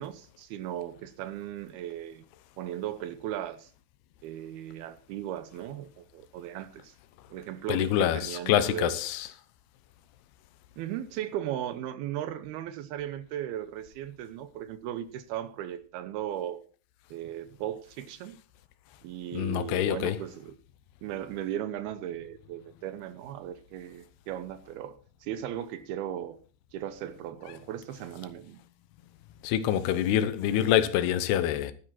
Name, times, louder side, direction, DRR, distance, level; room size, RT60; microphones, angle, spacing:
voice 1, 0.0-2.2 2.6-3.7 4.2-7.0 7.3-9.0 10.8-16.6 17.1-18.4 19.0-20.5 21.0-26.4 26.7-28.6, right 11 dB, 80° right, 2.6 m, -37 dB
voice 2, 7.7-9.3 19.3-20.2 29.4-31.7, left 11 dB, 80° left, 2.9 m, -26 dB
12.5 x 11.0 x 4.3 m
omnidirectional pair, 4.7 m